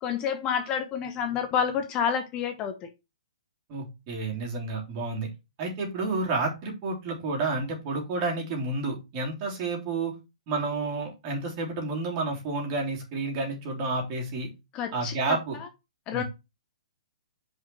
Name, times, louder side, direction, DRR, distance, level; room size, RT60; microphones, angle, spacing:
voice 1, 0.0-2.9 14.7-15.7 16.1-16.2, left 7 dB, 25° left, 0.9 m, -29 dB
voice 2, 3.7-5.3 5.6-10.1 10.5-14.5 14.9-15.6 16.1-16.2, right 3 dB, 30° right, 3.5 m, -30 dB
5.7 x 5.4 x 6.1 m
hypercardioid pair, 155°, 4 cm